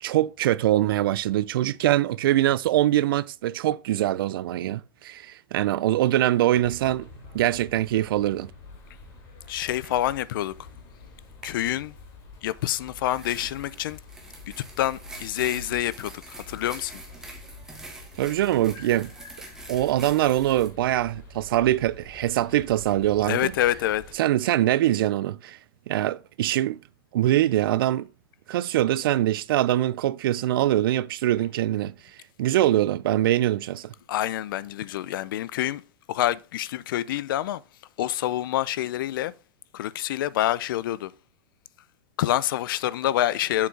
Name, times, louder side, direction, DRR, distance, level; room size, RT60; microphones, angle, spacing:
voice 1, 0.0-7.1 7.3-8.5 18.2-19.1 19.7-23.5 24.2-25.6 25.9-26.8 27.1-28.1 28.5-31.9 32.4-33.9, right 13 dB, 75° right, 0.4 m, -23 dB
sound 1, 6.5-24.1, left 2 dB, 30° left, 2.5 m, -47 dB
voice 2, 9.5-10.5 11.4-11.9 12.4-14.0 14.6-17.0 23.3-24.0 34.1-35.8 36.1-37.6 38.0-39.3 39.7-41.1 42.2-43.7, left 13 dB, 65° left, 0.5 m, -27 dB
sound 2, 9.5-9.6 9.8-10.2 11.4-11.6 12.9-20.7, right 2 dB, 5° right, 1.2 m, -45 dB
7.1 x 4.5 x 4.6 m
supercardioid pair, 165°, 12 cm